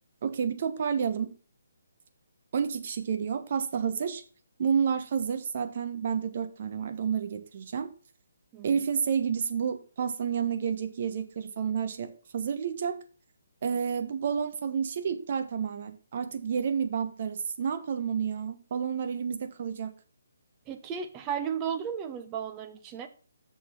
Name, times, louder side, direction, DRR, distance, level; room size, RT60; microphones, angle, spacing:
voice 1, 0.2-1.3 2.5-4.2 4.6-7.9 8.6-13.0 13.6-19.9, right 7 dB, 50° right, 1.2 m, -30 dB
voice 2, 20.7-23.1, right 8 dB, 20° right, 1.0 m, -34 dB
6.7 x 6.5 x 5.9 m
figure-of-eight pair, 145°, 0 cm